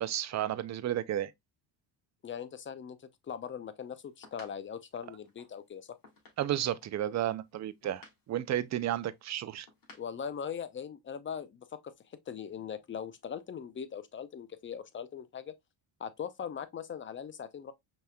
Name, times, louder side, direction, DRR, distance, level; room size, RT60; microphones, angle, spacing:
voice 1, 0.0-1.3 6.4-9.7, right 12 dB, 40° right, 0.5 m, -32 dB
voice 2, 2.2-3.0 3.2-6.0 9.9-15.5 16.0-17.7, left 7 dB, 25° left, 0.5 m, -40 dB
sound 1, 3.8-10.2, left 3 dB, 45° left, 2.2 m, -59 dB
5.4 x 3.0 x 2.2 m
supercardioid pair, 95°, 46 cm